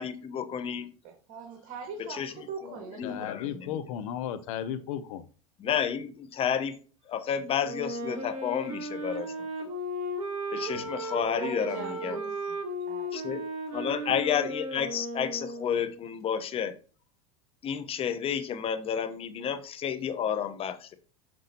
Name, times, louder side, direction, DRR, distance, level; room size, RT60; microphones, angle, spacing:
voice 1, 0.0-0.9 2.2-2.3 3.0-3.5 5.6-6.8 7.1-9.3 10.5-11.8 12.0-12.2 13.1-13.4 13.7-16.7 17.6-20.9, left 8 dB, 30° left, 11 dB, 0.9 m, -31 dB
voice 2, 1.0-3.7 11.3-12.6 12.9-13.2, right 5 dB, 55° right, 3 dB, 1.5 m, -42 dB
voice 3, 3.0-5.2 10.6-11.1, left 9 dB, 70° left, 11 dB, 0.7 m, -35 dB
Wind instrument woodwind instrument, 7.6-16.0, right 1 dB, 35° right, 2.8 m, -35 dB
6.4 x 6.1 x 2.8 m, 0.38 s
hypercardioid pair, 105°, 18 cm